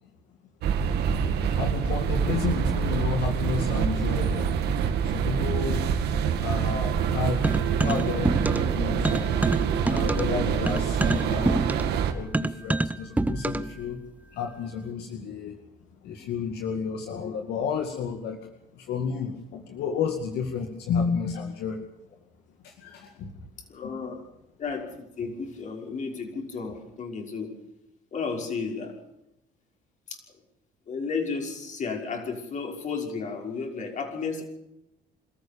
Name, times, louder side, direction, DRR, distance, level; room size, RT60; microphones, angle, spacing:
sound 1, 0.6-12.1, right 7 dB, 75° right, 2.5 m, -26 dB
voice 1, 1.5-5.9 6.4-9.4 9.9-11.7 12.1-14.0 14.3-15.6 16.0-21.8 22.6-23.4 23.8-23.9 26.7-26.8, left 6 dB, 75° left, 4 dB, 2.1 m, -32 dB
sound 2, 7.4-8.8 9.0-13.8, right 2 dB, 10° right, 1.0 m, -27 dB
voice 2, 23.7-24.2 24.6-27.5 28.1-28.9 30.1-30.2 30.9-34.4, left 5 dB, 45° left, 2 dB, 5.9 m, -33 dB
26.0 x 14.0 x 7.1 m, 0.88 s
cardioid pair, 110°, 17 cm